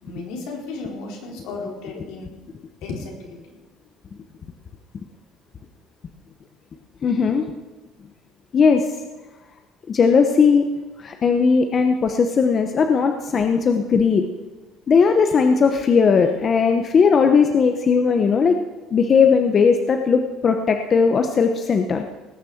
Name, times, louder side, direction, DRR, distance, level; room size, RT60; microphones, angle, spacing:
voice 1, 0.0-2.3 2.8-3.5, left 3 dB, 75° left, 0 dB, 4.3 m, -34 dB
voice 2, 7.0-7.4 8.5-8.8 9.9-10.7 11.0-14.3 14.9-18.6 18.9-22.0, left 5 dB, 30° left, 6 dB, 0.9 m, -17 dB
19.0 x 6.7 x 7.9 m, 1.2 s
cardioid pair, 160°, 0 cm